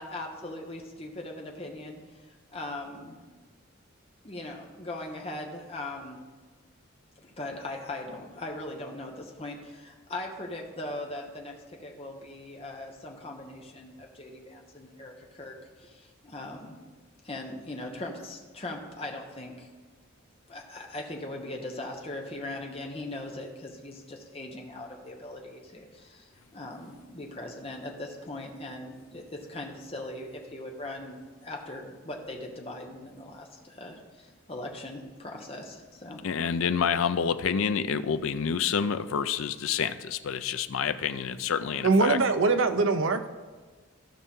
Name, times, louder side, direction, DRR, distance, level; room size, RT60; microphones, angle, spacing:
voice 1, 0.0-3.2 4.2-6.2 7.2-16.8 17.2-19.7 20.5-31.2 31.4-36.5, left 1 dB, 30° left, 1 dB, 1.2 m, -40 dB
voice 2, 36.2-42.2, left 7 dB, 75° left, 11 dB, 0.4 m, -28 dB
voice 3, 41.8-43.3, right 3 dB, 65° right, 8 dB, 0.6 m, -23 dB
15.0 x 5.6 x 3.7 m, 1.4 s
head